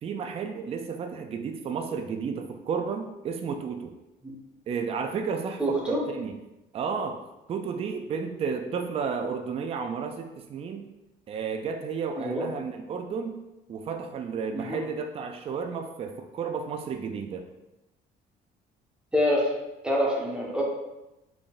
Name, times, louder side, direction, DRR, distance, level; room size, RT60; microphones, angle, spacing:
voice 1, 0.0-3.9 4.7-6.3 6.7-7.2 7.5-10.9 11.3-17.4, right 6 dB, 35° right, 6 dB, 0.4 m, -32 dB
voice 2, 5.6-6.0 12.2-12.5 14.5-14.8 19.1-19.5 19.8-20.6, equal, 5° right, -3 dB, 0.9 m, -26 dB
3.9 x 3.5 x 2.4 m, 0.96 s
cardioid pair, 110°, 17 cm